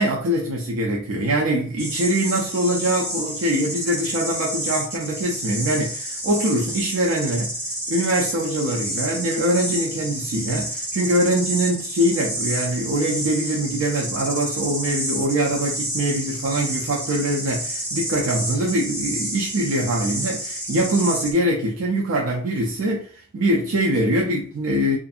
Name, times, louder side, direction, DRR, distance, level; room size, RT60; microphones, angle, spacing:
voice 1, 0.0-7.6 7.9-25.0, right 1 dB, 70° right, 0.5 m, -23 dB
sound 1, 1.8-21.3, right 1 dB, 10° right, 0.7 m, -30 dB
2.5 x 2.5 x 2.4 m
head